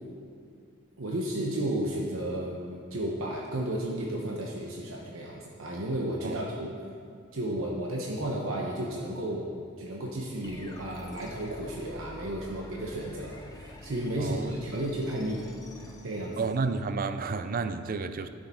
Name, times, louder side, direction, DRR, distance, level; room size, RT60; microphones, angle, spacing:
voice 1, 1.0-6.7 7.3-15.5 15.8-16.4, right 1 dB, 85° right, -2 dB, 1.0 m, -33 dB
sound 1, 10.4-16.9, left 2 dB, 20° left, 0.8 m, -47 dB
voice 2, 14.2-14.5 16.4-18.3, right 4 dB, 45° right, 11 dB, 0.4 m, -31 dB
11.5 x 6.6 x 4.4 m, 2.4 s
head